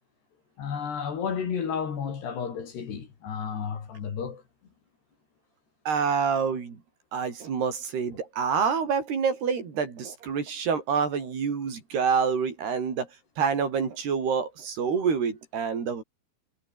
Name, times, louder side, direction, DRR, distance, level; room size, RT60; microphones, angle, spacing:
voice 1, 0.6-4.4, left 7 dB, 65° left, 6.0 m, -32 dB
voice 2, 5.9-6.8 7.1-13.1 13.4-16.0, right 6 dB, 65° right, 6.4 m, -27 dB
omnidirectional pair, 5.1 m